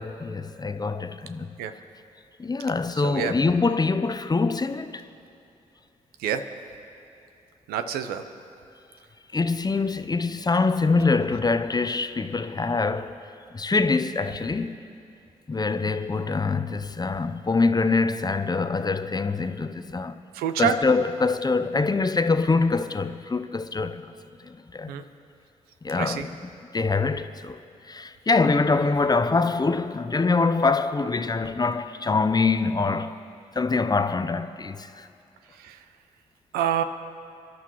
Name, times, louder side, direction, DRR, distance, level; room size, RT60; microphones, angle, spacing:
voice 1, 0.0-1.5 2.4-5.0 9.3-13.2 13.5-14.8 15.5-20.2 20.6-24.1 24.4-24.9 25.8-26.4 26.7-27.6 27.9-33.2 33.5-35.1, left 4 dB, 25° left, 0.6 m, -24 dB
voice 2, 3.0-3.3 6.2-6.5 7.7-8.2 20.3-20.8 24.9-25.0 26.0-26.3 35.6-35.8 36.5-36.8, right 9 dB, 85° right, 0.6 m, -26 dB
25.0 x 11.5 x 3.0 m
supercardioid pair, 45°, 15 cm